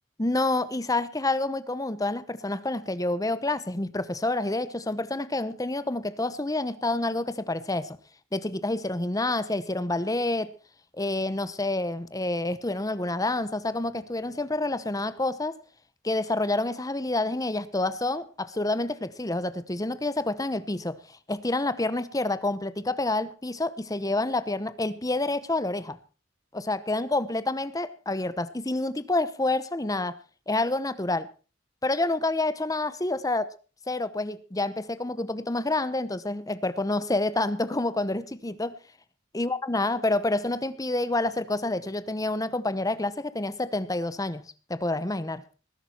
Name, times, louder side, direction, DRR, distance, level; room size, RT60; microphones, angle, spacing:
voice 1, 0.2-8.0 8.3-10.5 10.9-15.6 16.0-26.0 26.5-30.2 30.5-31.3 31.8-33.5 33.9-38.7 39.3-45.4, left 2 dB, 20° left, 0.9 m, -28 dB
20.0 x 11.5 x 4.4 m
head